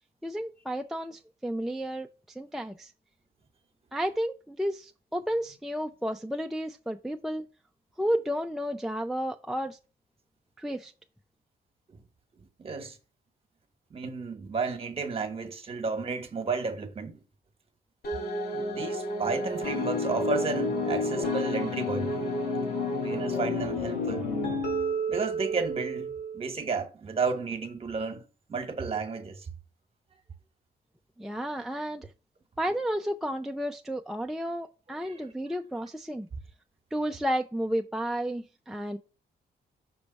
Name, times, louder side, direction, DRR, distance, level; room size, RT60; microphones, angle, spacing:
voice 1, 0.2-2.1 2.4-2.9 3.9-7.4 8.0-9.8 10.6-10.9 31.2-32.1 32.6-36.3 36.9-39.0, equal, ahead, 0.4 m, -32 dB
voice 2, 12.4-13.0 13.9-17.2 18.5-22.1 23.0-24.3 25.1-28.2 28.5-29.5 35.0-35.3, right 4 dB, 35° right, 1.2 m, -32 dB
sound 1, 18.0-26.5, left 1 dB, 70° left, 2.5 m, -30 dB
6.1 x 3.3 x 5.2 m
cardioid pair, 120°, 17 cm